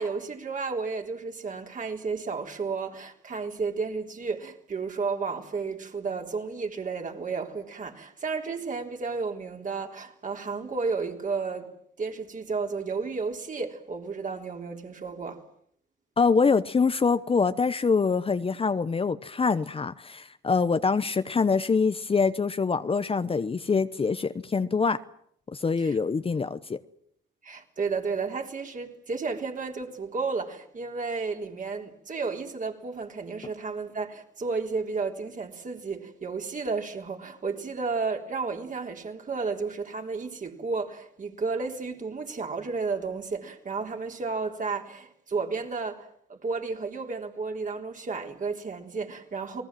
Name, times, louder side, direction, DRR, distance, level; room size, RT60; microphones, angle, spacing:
voice 1, 0.0-11.7 12.0-15.4 25.8-26.0 27.4-49.6, right 4 dB, 40° right, 3.9 m, -32 dB
voice 2, 16.2-25.0 25.6-26.8, left 5 dB, 30° left, 0.9 m, -25 dB
29.5 x 20.0 x 7.7 m
cardioid pair, 90°, 20 cm